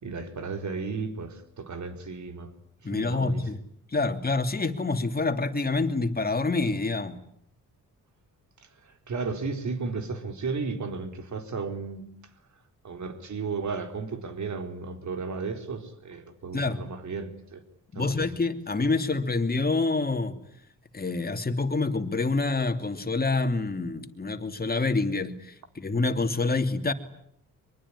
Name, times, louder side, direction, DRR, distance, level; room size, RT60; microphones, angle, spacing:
voice 1, 0.0-2.5 2.9-3.4 8.8-12.0 12.8-17.6 17.9-18.2, right 4 dB, 55° right, 4.1 m, -34 dB
voice 2, 2.8-3.6 3.9-7.2 16.5-16.8 17.9-20.4 20.9-26.9, left 3 dB, 25° left, 2.9 m, -27 dB
23.5 x 23.5 x 9.9 m
cardioid pair, 75°, 34 cm